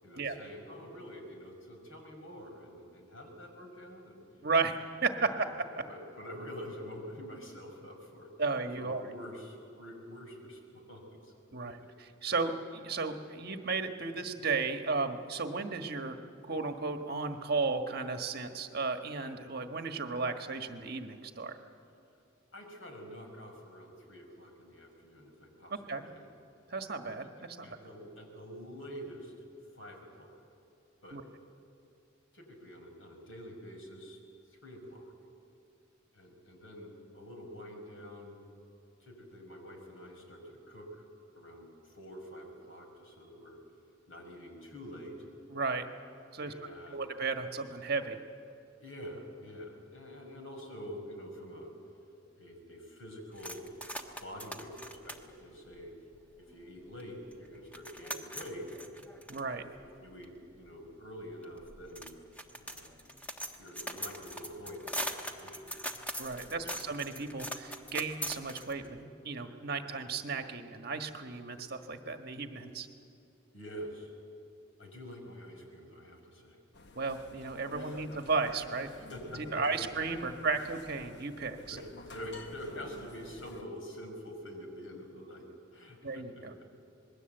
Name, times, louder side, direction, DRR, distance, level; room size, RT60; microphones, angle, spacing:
voice 1, 0.0-4.2 5.3-5.4 5.9-11.3 11.8-11.9 12.2-12.4 22.5-25.8 26.1-26.3 27.2-27.3 27.6-29.3 29.8-30.4 31.0-31.2 32.3-34.2 34.5-35.1 36.1-38.4 39.0-41.0 41.3-43.6 44.1-45.2 46.4-47.1 48.8-51.7 52.4-53.7 54.2-55.9 56.3-58.7 59.5-62.1 62.6-63.0 63.6-65.8 66.4-66.7 73.5-74.1 74.8-76.6 77.7-78.0 78.9-79.9 81.7-81.8 82.1-85.4 85.7-86.4, equal, 85° left, 3 dB, 5.7 m, -47 dB
voice 2, 4.4-5.3 5.6-5.8 8.4-9.0 11.5-16.2 16.4-21.6 25.7-26.0 26.7-27.7 31.1-31.2 45.5-45.9 46.3-46.5 46.9-48.2 59.3-59.6 66.2-72.9 77.0-78.9 79.5-81.8 86.0-86.5, right 4 dB, 50° right, 6 dB, 1.5 m, -34 dB
sound 1, 53.4-56.5 57.0-57.1 57.3-69.0, equal, 5° left, 1.4 m, -42 dB
sound 2, 76.7-83.6, left 2 dB, 60° left, 1.1 m, -51 dB
26.5 x 21.0 x 8.0 m, 2.8 s
head